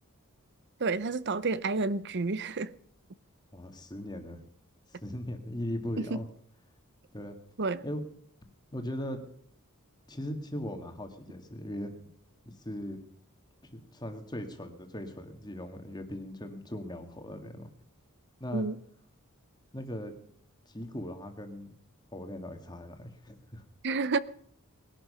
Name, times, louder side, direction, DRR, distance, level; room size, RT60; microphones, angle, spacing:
voice 1, 0.8-2.7 6.0-6.2 7.6-7.8 18.5-18.8 23.8-24.2, right 3 dB, 50° right, 0.7 m, -30 dB
voice 2, 3.5-4.4 5.0-6.3 7.1-7.4 7.8-8.0 8.7-9.2 10.1-11.9 12.5-13.0 13.7-17.7 18.4-18.7 19.7-20.1 20.7-21.8 22.1-23.6, left 1 dB, 20° left, 1.9 m, -39 dB
20.0 x 11.5 x 5.6 m
head